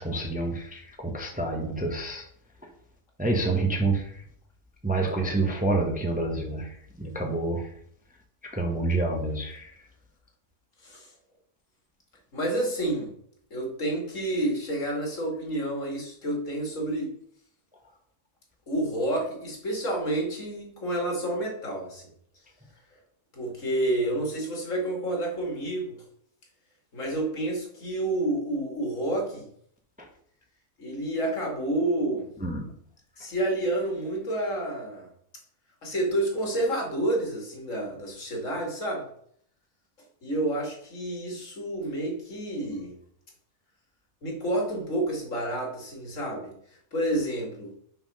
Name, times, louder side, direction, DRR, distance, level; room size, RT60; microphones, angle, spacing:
voice 1, 0.0-2.2 3.2-4.2 4.8-6.7 7.0-7.7 8.5-9.7 30.0-30.1 32.4-32.6, right 2 dB, 5° right, 1 dB, 1.0 m, -28 dB
voice 2, 12.3-13.2 13.5-17.1 18.7-22.1 23.3-26.0 26.9-29.5 30.8-32.3 33.2-35.1 35.8-39.1 40.2-43.0 44.2-46.5 46.9-47.7, right 1 dB, 60° left, 0 dB, 2.5 m, -29 dB
5.8 x 5.7 x 5.4 m, 0.65 s
omnidirectional pair, 1.5 m